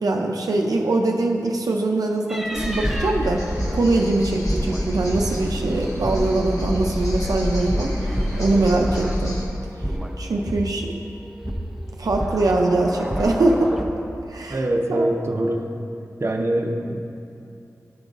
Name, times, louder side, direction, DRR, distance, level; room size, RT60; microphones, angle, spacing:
voice 1, 0.0-3.4 3.7-7.9 8.4-9.4 10.2-11.0 12.0-13.8 14.3-14.6 14.9-15.1, right 2 dB, 85° right, 1 dB, 0.5 m, -22 dB
sound 1, 2.3-9.5 9.8-11.0 11.4-13.8, equal, 5° right, 0.6 m, -30 dB
sound 2, 2.5-9.5, left 1 dB, 60° left, 1.1 m, -28 dB
voice 2, 14.5-15.7 16.2-17.0, right 1 dB, 45° right, 2 dB, 0.6 m, -23 dB
11.0 x 3.9 x 3.6 m, 2.6 s
wide cardioid pair, 55°, 6 cm